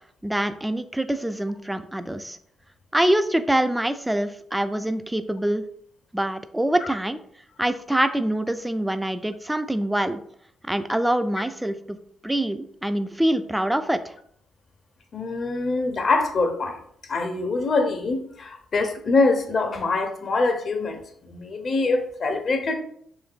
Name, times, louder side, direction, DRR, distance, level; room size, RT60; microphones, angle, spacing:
voice 1, 0.2-2.4 2.9-5.6 6.1-7.2 7.6-10.2 10.6-12.0 12.2-14.1, right 1 dB, 10° right, 11 dB, 0.3 m, -25 dB
voice 2, 15.1-16.8 17.1-22.7, left 3 dB, 50° left, 6 dB, 0.6 m, -24 dB
3.1 x 3.1 x 2.4 m, 0.65 s
hypercardioid pair, 45°, 0 cm